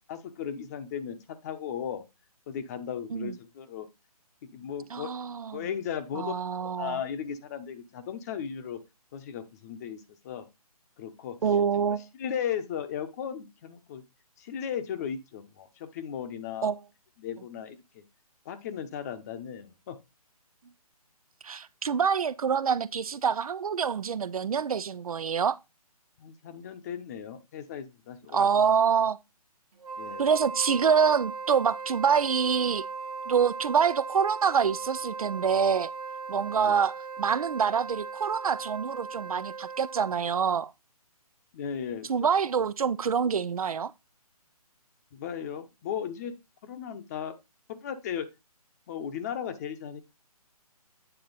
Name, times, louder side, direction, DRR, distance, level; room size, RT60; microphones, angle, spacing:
voice 1, 0.1-2.0 2.5-3.9 4.4-5.1 5.5-8.8 9.1-10.5 11.0-11.4 11.9-14.0 14.4-16.7 17.2-18.0 18.4-20.0 26.2-28.5 30.0-30.3 36.6-36.8 41.5-42.3 45.1-46.3 46.6-47.3 47.7-48.3 48.9-50.0, left 8 dB, 25° left, 0.9 m, -36 dB
voice 2, 4.9-5.6 6.1-7.0 11.4-12.0 16.6-16.8 21.4-25.6 28.3-29.2 30.2-32.8 33.3-35.9 36.3-40.7 42.1-43.9, right 6 dB, 65° right, 0.5 m, -26 dB
Wind instrument woodwind instrument, 29.8-40.4, right 4 dB, 85° right, 1.1 m, -38 dB
9.1 x 4.2 x 4.0 m
figure-of-eight pair, 150°, 20 cm